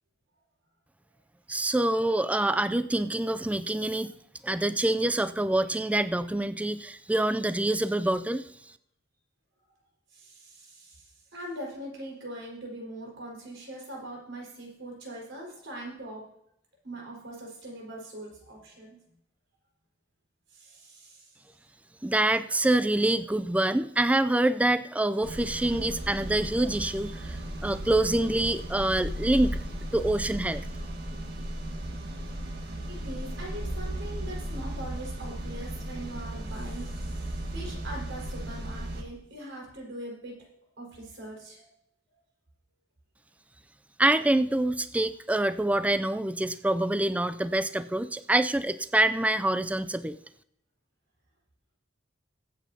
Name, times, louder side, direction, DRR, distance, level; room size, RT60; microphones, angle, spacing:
voice 1, 1.5-4.1 4.4-8.4 22.0-29.6 29.9-30.6 44.0-50.2, right 1 dB, 5° right, 12 dB, 0.3 m, -26 dB
voice 2, 10.1-16.3 16.8-19.0 20.5-21.3 30.8-30.9 31.9-32.1 32.6-40.3 40.8-41.7, right 1 dB, 80° right, -2 dB, 4.7 m, -42 dB
sound 1, 25.2-39.0, right 1 dB, 60° right, 1.5 m, -35 dB
22.5 x 8.1 x 2.8 m, 0.74 s
head